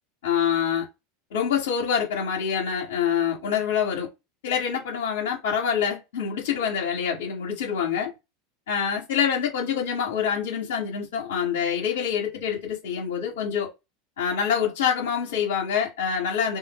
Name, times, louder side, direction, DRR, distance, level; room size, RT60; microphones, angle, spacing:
voice 1, 0.2-0.9 1.3-4.1 4.4-8.1 8.7-13.7 14.2-16.6, left 7 dB, 70° left, 1.2 m, -26 dB
2.5 x 2.4 x 4.1 m
hypercardioid pair, 85°, 0 cm